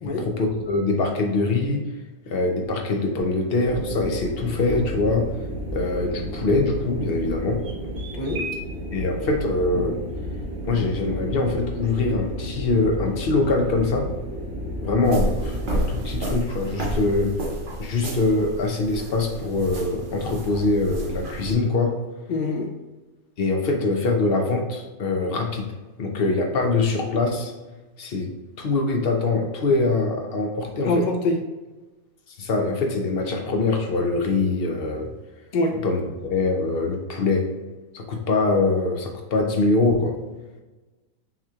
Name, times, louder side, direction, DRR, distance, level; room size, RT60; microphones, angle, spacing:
voice 1, 0.0-1.9 2.3-5.3 5.7-7.6 8.9-10.0 10.6-14.1 14.8-17.3 17.8-21.9 23.4-25.7 26.0-27.5 28.0-28.3 28.6-31.1 32.3-35.1 35.7-37.5 37.9-40.2, left 3 dB, 55° left, 2 dB, 0.7 m, -23 dB
sound 1, 3.6-16.3, right 1 dB, 80° right, 1.3 m, -32 dB
voice 2, 8.1-8.4 22.3-22.7 30.8-31.4 35.5-35.8, left 2 dB, 85° left, 3 dB, 0.4 m, -24 dB
sound 2, 15.0-21.5, right 1 dB, 50° right, 0.7 m, -30 dB
5.7 x 3.0 x 2.3 m, 1.2 s
omnidirectional pair, 1.5 m